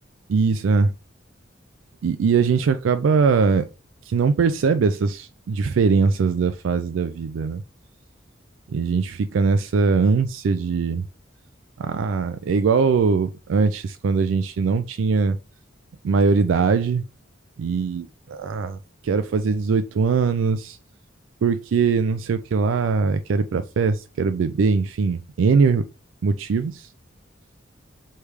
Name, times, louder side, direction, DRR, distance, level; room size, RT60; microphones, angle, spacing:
voice 1, 0.3-0.9 2.0-3.7 4.1-7.6 8.7-11.0 11.8-15.4 16.0-17.0 17.6-18.8 19.0-20.8 21.4-25.8 26.2-26.9, right 5 dB, 85° right, 0.4 m, -21 dB
3.3 x 3.2 x 4.7 m
head